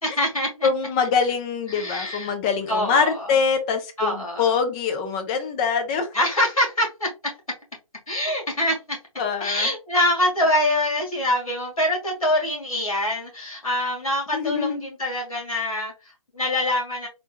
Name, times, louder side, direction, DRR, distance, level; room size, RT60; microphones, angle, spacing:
voice 1, 0.0-0.7 1.7-2.3 2.7-3.3 4.0-4.5 6.1-7.1 8.1-9.0 9.4-17.1, left 1 dB, 90° left, 2.0 m, -24 dB
voice 2, 0.6-6.1 9.2-9.7 14.3-14.9, left 5 dB, 15° left, 0.3 m, -24 dB
3.6 x 2.3 x 2.8 m
figure-of-eight pair, 145°, 18 cm